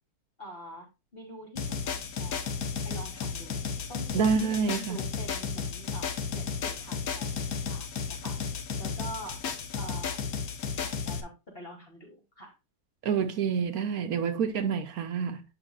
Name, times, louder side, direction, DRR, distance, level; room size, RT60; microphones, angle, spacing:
voice 1, 0.4-2.6 2.8-3.6 3.9-8.4 8.8-9.4 9.7-10.3 10.8-12.5, right 1 dB, 35° left, 3.1 m, -45 dB
sound 1, 1.6-11.2, left 6 dB, 65° left, 1.4 m, -33 dB
voice 2, 4.1-5.0 13.0-15.4, right 6 dB, 70° right, 1.2 m, -27 dB
8.3 x 5.9 x 2.3 m
omnidirectional pair, 1.7 m